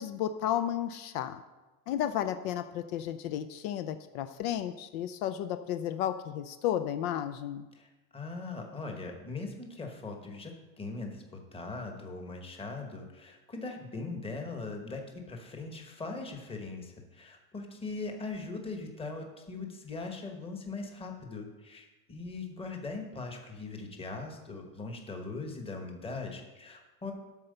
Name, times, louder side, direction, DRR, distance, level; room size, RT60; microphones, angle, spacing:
voice 1, 0.0-1.4 1.9-7.7, left 10 dB, 65° left, 10 dB, 0.6 m, -33 dB
voice 2, 7.7-15.0 15.3-27.1, left 3 dB, 10° left, 3 dB, 1.1 m, -40 dB
12.0 x 4.5 x 6.6 m, 1.1 s
cardioid pair, 155°, 45 cm